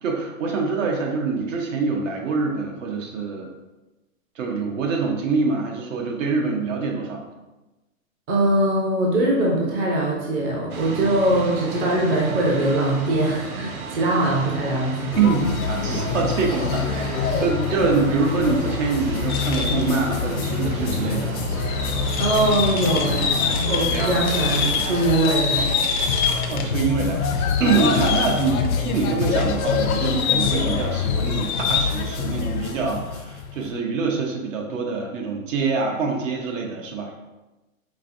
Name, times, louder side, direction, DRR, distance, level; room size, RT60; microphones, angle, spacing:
voice 1, 0.0-3.5 4.3-7.2 15.2-21.4 23.9-24.2 26.2-37.1, right 4 dB, 65° right, 1 dB, 1.0 m, -25 dB
voice 2, 8.3-15.1 22.2-25.8, right 1 dB, 25° right, -2 dB, 0.6 m, -22 dB
sound 1, 10.7-25.0, right 3 dB, 85° right, 0.8 m, -33 dB
sound 2, 15.1-33.7, left 5 dB, 85° left, 0.7 m, -26 dB
sound 3, 19.3-20.0 20.7-20.8 21.5-26.8 27.1-28.7 29.2-32.1, left 6 dB, 35° left, 0.4 m, -27 dB
5.3 x 2.6 x 2.6 m, 1.1 s
hypercardioid pair, 145°, 41 cm